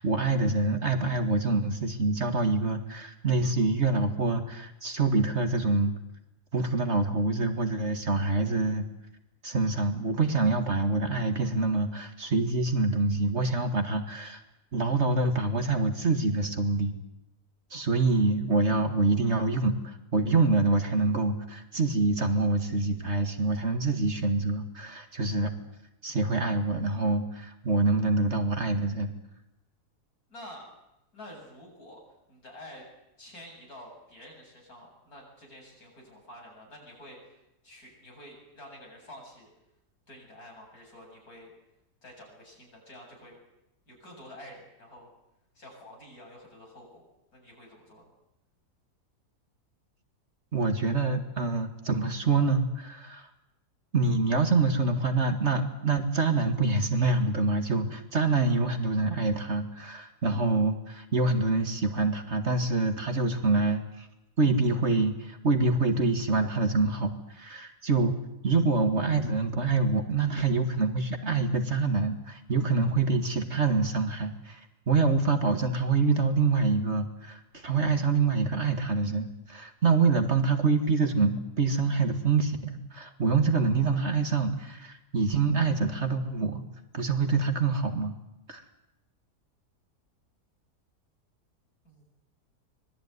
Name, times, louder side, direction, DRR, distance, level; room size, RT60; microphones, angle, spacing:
voice 1, 0.0-5.9 6.5-8.8 9.4-14.4 14.7-16.9 17.7-25.5 26.0-29.1 50.5-53.3 53.9-64.1 64.4-68.1 68.4-74.6 74.9-86.6 86.9-88.2 88.5-88.6, right 3 dB, 45° right, 7 dB, 2.1 m, -26 dB
voice 2, 30.3-30.7 31.1-32.0 32.3-32.9 33.2-39.5 40.1-41.5 42.0-43.4 43.9-45.1 45.5-47.0 47.3-48.1 91.8-92.0, left 1 dB, 65° left, 0 dB, 8.6 m, -49 dB
25.0 x 20.5 x 9.6 m, 0.89 s
omnidirectional pair, 1.7 m